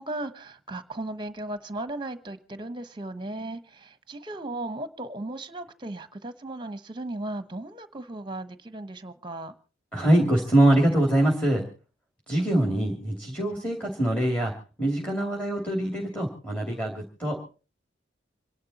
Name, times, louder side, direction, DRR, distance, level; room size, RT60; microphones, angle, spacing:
voice 1, 0.0-9.5, right 2 dB, 25° right, 12 dB, 1.0 m, -36 dB
voice 2, 9.9-11.6 12.3-14.5 14.8-17.4, right 1 dB, 5° left, 0 dB, 2.7 m, -24 dB
26.5 x 11.0 x 4.2 m, 0.36 s
head